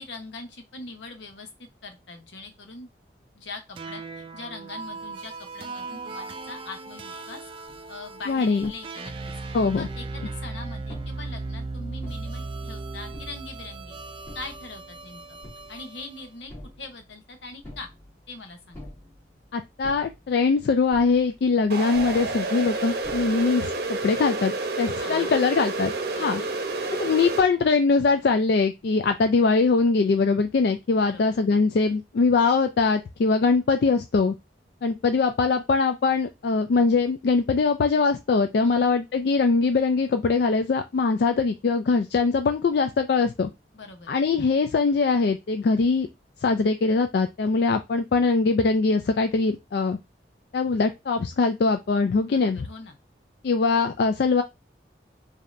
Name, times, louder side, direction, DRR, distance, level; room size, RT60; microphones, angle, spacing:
voice 1, 0.0-2.9 3.3-7.4 7.9-14.0 14.3-15.4 15.7-16.5 16.8-17.9 18.3-18.9 25.0-25.4 26.1-26.5 31.0-31.6 38.6-38.9 43.7-44.1 52.2-53.0, left 3 dB, 80° left, 5 dB, 0.9 m, -42 dB
sound 1, 3.8-16.3, right 3 dB, 30° right, 0.3 m, -37 dB
sound 2, 7.7-24.0, left 1 dB, 10° left, 2.2 m, -49 dB
voice 2, 8.3-8.7 9.5-9.9 19.5-25.9 26.2-26.4 27.0-34.3 34.8-43.5 44.1-46.1 46.4-50.0 50.5-52.6 53.4-54.4, left 4 dB, 60° left, 7 dB, 0.3 m, -22 dB
sound 3, 21.7-27.4, right 3 dB, 55° right, 0.8 m, -29 dB
5.1 x 2.7 x 2.5 m, 0.23 s
head